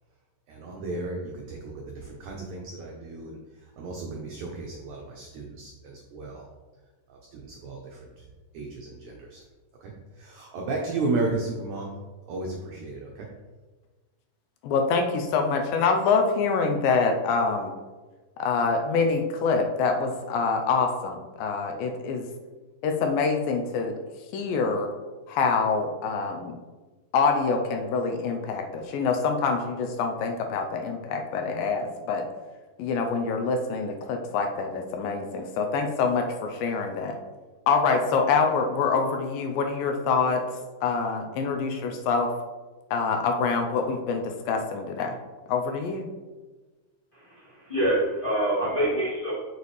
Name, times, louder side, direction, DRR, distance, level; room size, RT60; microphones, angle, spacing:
voice 1, 0.5-3.3 3.8-6.4 7.3-7.8 8.5-9.4 9.8-9.9 10.2-11.9 12.3-13.3, right 3 dB, 80° right, 0 dB, 1.6 m, -33 dB
voice 2, 14.6-17.7 18.4-22.2 22.8-23.9 24.3-24.9 25.3-26.5 27.1-32.2 32.8-37.2 37.7-40.4 40.8-42.3 42.9-45.2 45.5-46.1, left 4 dB, 80° left, 4 dB, 2.3 m, -25 dB
voice 3, 47.1-49.3, right 1 dB, 40° left, -9 dB, 0.7 m, -26 dB
6.8 x 6.7 x 3.2 m, 1.3 s
omnidirectional pair, 4.3 m